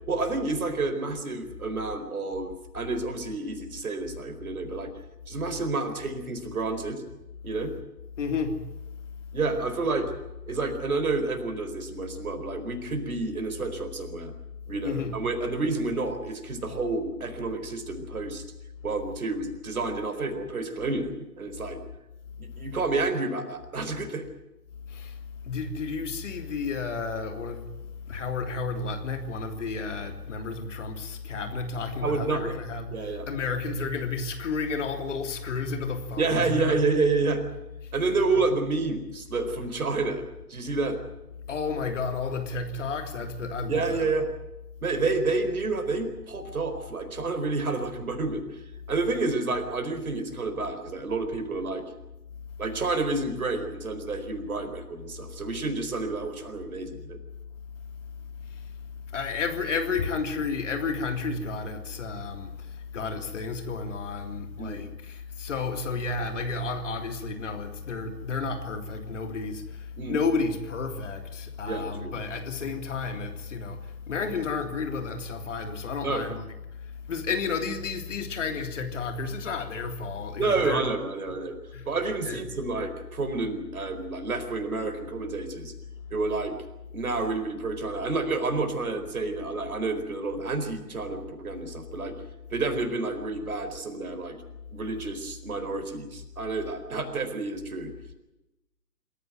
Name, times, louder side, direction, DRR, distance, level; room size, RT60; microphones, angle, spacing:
voice 1, 0.1-4.9 5.3-7.0 7.4-7.7 9.3-10.1 10.5-14.3 14.7-18.4 18.8-21.8 22.4-24.3 32.0-32.6 32.9-33.3 36.2-37.4 37.9-40.2 40.5-41.0 43.7-44.3 44.8-48.6 48.9-51.8 52.6-57.2 64.6-64.8 70.0-70.2 71.6-72.2 76.0-76.3 80.4-81.5 81.9-85.7 86.1-86.6 86.9-92.2 92.5-94.4 94.7-97.9, right 3 dB, 60° right, 4.5 m, -29 dB
voice 2, 8.2-8.7 14.8-15.1 24.9-27.7 28.1-36.8 41.5-44.0 58.4-58.7 59.1-76.4 76.9-80.9 81.7-81.9 82.3-82.4, left 4 dB, 50° left, 3.4 m, -32 dB
26.5 x 14.5 x 9.3 m
figure-of-eight pair, 135°, 47 cm